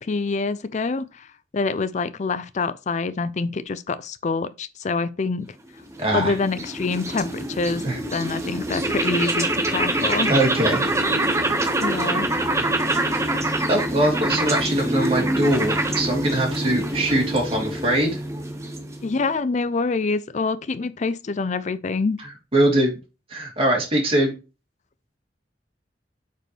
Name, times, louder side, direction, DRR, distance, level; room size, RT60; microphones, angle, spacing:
voice 1, 0.0-1.3 1.5-5.5 6.1-7.8 8.1-10.3 11.8-12.3 19.0-22.2, left 4 dB, 40° left, 0.5 m, -26 dB
sound 1, 5.8-19.2, right 1 dB, 15° right, 1.3 m, -25 dB
voice 2, 6.0-6.3 7.8-8.0 10.3-10.8 11.4-11.6 13.7-18.2 22.5-22.9 23.3-24.3, right 1 dB, 35° right, 3.0 m, -22 dB
8.8 x 5.1 x 3.2 m
head